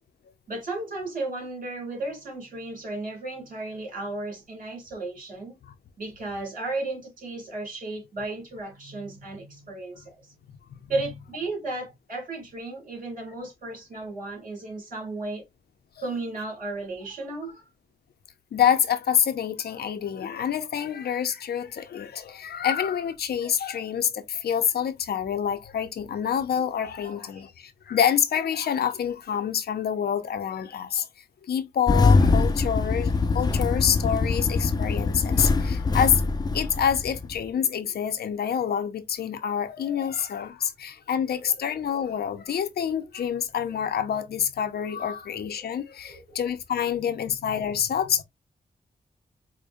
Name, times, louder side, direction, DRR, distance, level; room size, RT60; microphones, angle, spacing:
voice 1, 0.5-5.6 6.0-10.3 10.9-15.4 16.0-17.6 27.0-27.5 39.8-40.0 41.4-41.5 45.0-45.1 45.6-45.7 46.0-46.2 46.9-47.0, right 2 dB, 55° right, 2.5 m, -34 dB
voice 2, 18.5-31.1 31.4-36.2 36.5-48.2, left 8 dB, 80° left, 0.6 m, -27 dB
Engine starting, 31.9-37.4, left 3 dB, 25° left, 0.4 m, -23 dB
4.9 x 2.1 x 2.5 m
cardioid pair, 85°, 16 cm